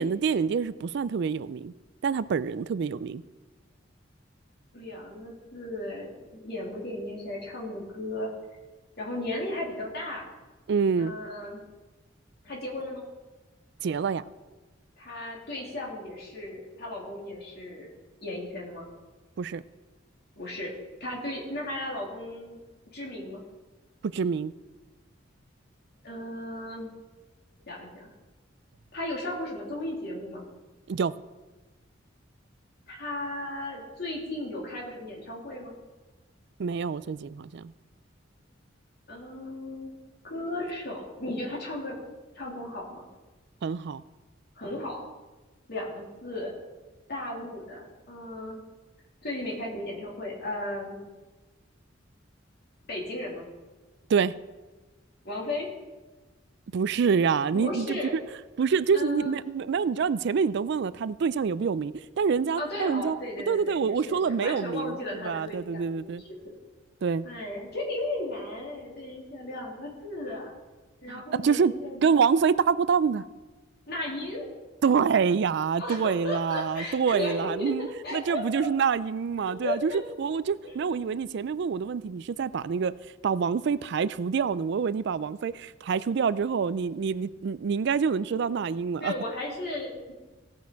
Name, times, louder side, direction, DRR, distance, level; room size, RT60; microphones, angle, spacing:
voice 1, 0.0-1.7 2.0-3.2 10.7-11.1 13.8-14.2 19.4-19.6 24.1-24.5 30.9-31.1 36.6-37.7 43.6-44.0 54.1-54.3 56.7-58.0 58.6-63.2 63.5-65.0 65.2-66.2 67.0-67.2 71.1-71.7 72.0-73.2 74.8-79.9 80.2-82.9 83.2-89.1, right 6 dB, 65° right, 17 dB, 0.4 m, -26 dB
voice 2, 4.7-8.3 9.0-10.3 11.0-11.6 12.4-13.0 15.0-17.9 18.2-18.8 20.4-20.7 21.0-22.6 22.9-23.4 26.0-26.9 27.7-28.0 28.9-30.4 32.9-35.7 39.1-39.9 40.2-42.0 42.3-43.0 44.5-45.1 45.7-46.5 47.1-48.6 49.2-51.0 52.9-53.4 55.2-55.7 57.5-58.2 58.9-59.3 62.6-66.4 67.2-70.5 71.0-72.1 73.9-74.5 75.7-78.7 79.4-80.0 80.6-80.8 89.0-89.9, left 1 dB, 60° left, -2 dB, 3.1 m, -35 dB
17.0 x 6.3 x 4.7 m, 1.2 s
head